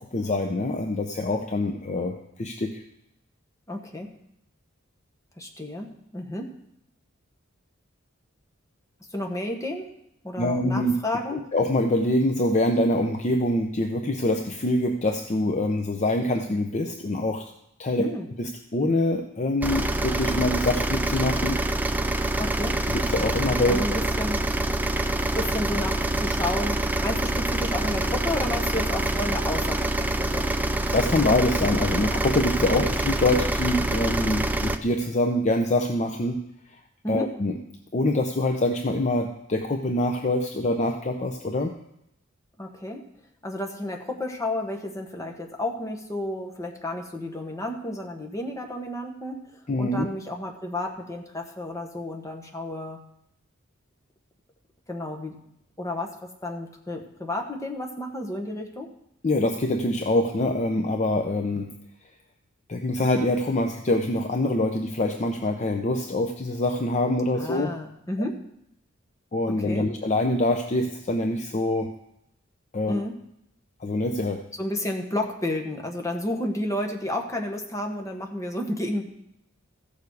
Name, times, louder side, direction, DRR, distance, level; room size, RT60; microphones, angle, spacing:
voice 1, 0.1-2.8 10.4-10.9 11.3-17.5 17.8-18.1 18.4-21.6 22.9-23.8 30.9-36.4 37.1-37.5 37.9-41.7 49.7-50.1 59.2-61.7 62.7-67.7 69.3-71.9 72.7-73.0 73.8-74.4, left 1 dB, 35° left, 5 dB, 0.6 m, -25 dB
voice 2, 3.7-4.1 5.4-6.5 9.1-9.9 10.2-11.5 18.0-18.3 22.4-22.8 23.7-24.5 25.3-30.5 32.8-32.9 37.0-37.3 42.6-43.0 43.4-49.4 49.8-53.0 54.9-55.4 55.8-58.9 67.4-68.4 69.5-69.9 72.9-73.1 74.6-79.0, left 1 dB, 15° left, 2 dB, 1.3 m, -31 dB
sound 1, 19.6-34.8, right 1 dB, 10° right, 0.5 m, -26 dB
15.0 x 6.9 x 4.8 m, 0.80 s
head